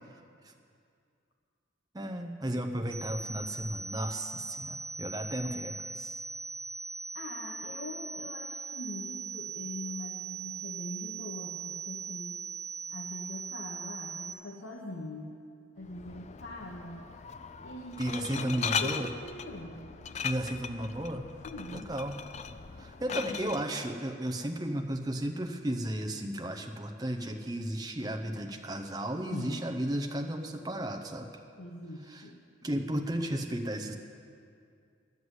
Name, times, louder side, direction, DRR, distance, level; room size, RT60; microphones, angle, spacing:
voice 1, 1.9-6.2 18.0-19.1 20.2-21.3 21.7-22.2 22.8-31.3 32.1-32.3 32.6-33.9, right 1 dB, 20° right, 4 dB, 0.6 m, -34 dB
sound 1, 2.9-14.3, right 5 dB, 10° left, 2.6 m, -40 dB
voice 2, 7.1-12.3 12.9-15.3 15.8-17.1 17.6-18.0 18.3-19.8 21.4-21.9 23.1-23.5 29.3-29.7 31.6-32.4, left 1 dB, 65° left, -1 dB, 1.1 m, -42 dB
Glass, 15.8-23.6, left 6 dB, 35° left, 0.4 m, -38 dB
11.0 x 8.0 x 9.6 m, 2.4 s
head